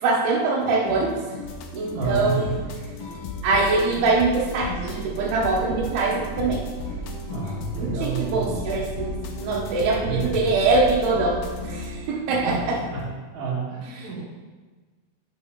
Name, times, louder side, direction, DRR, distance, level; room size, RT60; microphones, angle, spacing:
voice 1, 0.0-1.2 1.7-2.6 3.4-6.7 7.8-12.8 14.0-14.2, right 3 dB, 85° right, -2 dB, 3.1 m, -23 dB
sound 1, 0.6-13.0, left 3 dB, 50° left, 1.9 m, -38 dB
sound 2, 1.4-11.9, equal, 80° left, 1.7 m, -35 dB
voice 2, 1.9-2.5 7.3-8.5 10.0-10.4 12.1-12.6 12.9-13.0 13.3-14.2, right 4 dB, 55° right, -5 dB, 3.0 m, -29 dB
8.3 x 7.6 x 4.0 m, 1.3 s
omnidirectional pair, 4.4 m